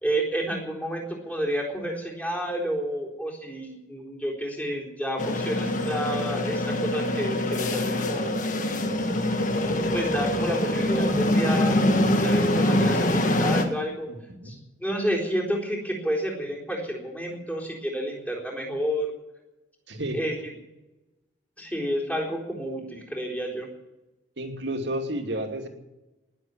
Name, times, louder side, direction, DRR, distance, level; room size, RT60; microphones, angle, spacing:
voice 1, 0.0-8.3 9.6-14.1 14.4-19.1 20.1-20.3 21.6-23.7, equal, 5° left, -1 dB, 4.0 m, -30 dB
sound 1, 5.2-13.6, left 1 dB, 40° left, 1.7 m, -24 dB
voice 2, 14.1-14.6 19.9-20.2 24.4-25.7, right 1 dB, 65° right, 4 dB, 2.6 m, -31 dB
19.5 x 7.7 x 9.5 m, 1.0 s
head